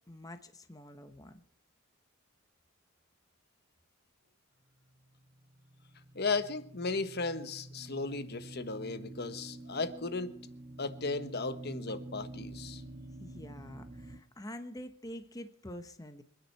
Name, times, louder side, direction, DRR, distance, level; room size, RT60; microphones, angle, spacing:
voice 1, 0.1-1.4 13.2-16.2, left 1 dB, 15° left, 1.0 m, -46 dB
sound 1, 4.8-14.2, right 1 dB, 30° right, 0.9 m, -48 dB
voice 2, 6.1-10.3 10.8-12.8, left 3 dB, 50° left, 1.3 m, -35 dB
26.0 x 10.0 x 4.6 m
head